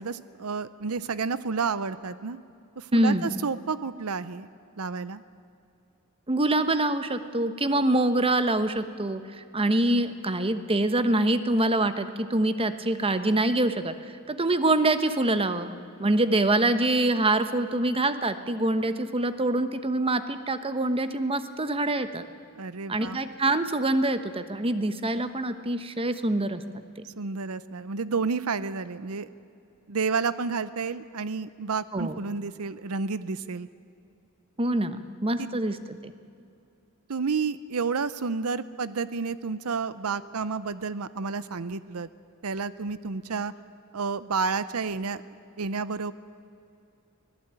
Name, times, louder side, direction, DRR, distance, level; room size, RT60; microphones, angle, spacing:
voice 1, 0.0-2.4 2.8-4.5 4.8-5.2 22.5-23.2 27.0-29.3 29.9-33.7 35.4-35.5 37.1-42.1 42.4-43.5 43.9-45.2 45.6-46.1, right 5 dB, 80° right, 15 dB, 0.7 m, -30 dB
voice 2, 2.9-3.4 6.3-13.9 14.3-15.7 16.0-22.2 22.9-26.6 31.9-32.2 34.6-36.1, right 2 dB, 25° right, 11 dB, 1.1 m, -25 dB
24.0 x 18.0 x 8.9 m, 2.5 s
head